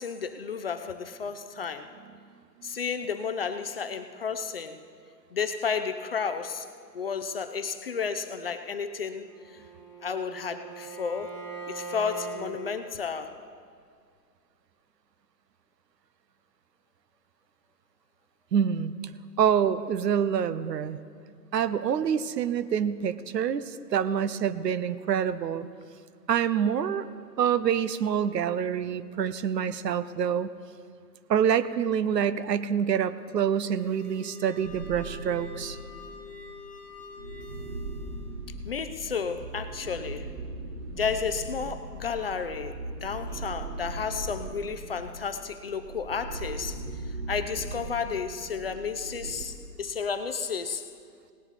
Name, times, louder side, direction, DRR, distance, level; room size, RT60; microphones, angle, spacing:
voice 1, 0.0-1.9 2.6-4.8 5.3-6.7 6.9-9.6 10.0-11.3 11.7-13.3 38.6-40.3 40.9-50.8, left 6 dB, 40° left, 9 dB, 0.4 m, -32 dB
Bowed string instrument, 9.2-12.4, right 5 dB, 55° right, 3.6 m, -41 dB
voice 2, 18.5-19.0 19.4-21.0 21.5-25.7 26.3-27.1 27.4-30.5 31.3-35.8, right 8 dB, 75° right, 15 dB, 0.8 m, -26 dB
sound 1, 33.4-38.3, left 4 dB, 5° left, 1.5 m, -46 dB
sound 2, 34.6-36.3 36.9-49.5, right 2 dB, 40° right, 1.2 m, -39 dB
18.0 x 9.8 x 4.1 m, 2.2 s
hypercardioid pair, 145°, 50 cm